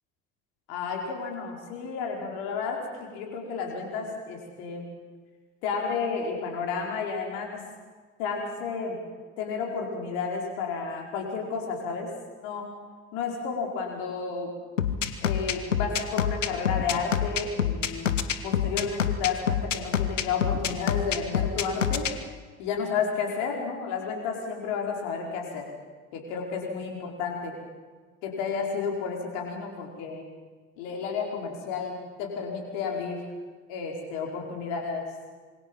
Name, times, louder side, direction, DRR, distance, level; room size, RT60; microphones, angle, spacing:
voice 1, 0.7-4.9 5.6-7.7 8.2-9.0 9.4-12.1 12.4-12.7 13.1-14.5 15.2-18.2 18.4-22.1 22.6-25.6 26.1-27.6 28.2-30.3 30.8-33.2 33.7-35.1, left 5 dB, 65° left, 0 dB, 5.1 m, -32 dB
sound 1, 14.8-22.1, left 8 dB, 85° left, 1.1 m, -26 dB
26.5 x 24.0 x 5.6 m, 1.4 s
figure-of-eight pair, 55°, 36 cm